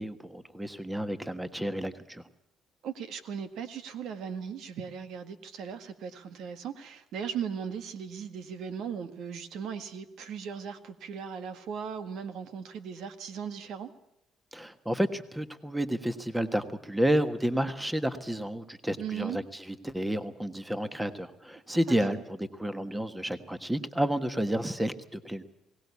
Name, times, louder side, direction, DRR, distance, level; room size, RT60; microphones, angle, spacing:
voice 1, 0.0-2.2 14.5-25.4, right 1 dB, 5° right, 11 dB, 1.4 m, -31 dB
voice 2, 2.8-13.9 19.0-19.4 22.1-22.2, right 7 dB, 75° right, 10 dB, 1.8 m, -38 dB
22.0 x 18.0 x 8.3 m, 0.85 s
cardioid pair, 110°, 0 cm